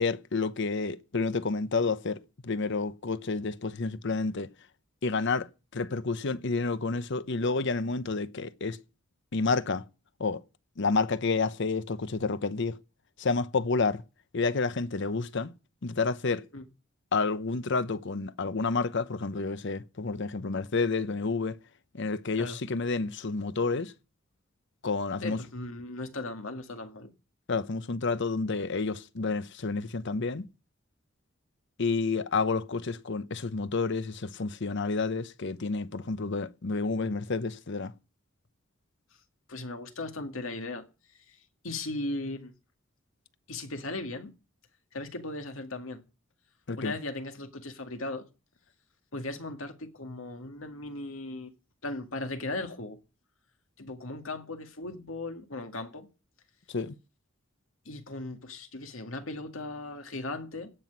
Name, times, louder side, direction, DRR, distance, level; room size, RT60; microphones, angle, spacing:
voice 1, 0.0-4.5 5.0-8.8 9.3-9.8 10.2-10.4 10.8-12.8 13.2-14.0 14.3-15.5 15.8-16.4 17.1-21.6 21.9-23.9 24.8-25.4 27.5-30.5 31.8-37.9 46.7-46.9 56.7-57.0, left 4 dB, 65° left, 0.8 m, -30 dB
voice 2, 25.2-27.1 39.5-40.9 41.3-42.5 43.5-44.3 44.9-46.0 46.8-48.3 49.1-51.5 51.8-53.0 53.8-56.1 57.9-60.7, left 2 dB, 85° left, 2.1 m, -37 dB
16.5 x 6.1 x 9.4 m
head